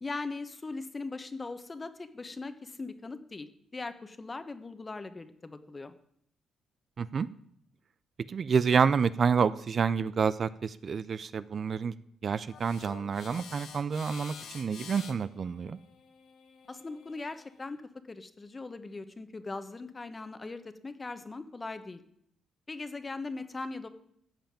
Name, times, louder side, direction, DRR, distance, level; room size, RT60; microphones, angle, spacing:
voice 1, 0.0-5.9 16.7-17.8 18.1-22.0 22.7-23.9, left 3 dB, 25° left, 10 dB, 1.2 m, -40 dB
voice 2, 8.3-11.9 12.2-15.8, right 6 dB, 45° right, 15 dB, 0.5 m, -28 dB
sound 1, 12.5-17.7, left 7 dB, 70° left, 2.0 m, -49 dB
14.0 x 5.7 x 8.7 m, 0.71 s
cardioid pair, 90°, 0 cm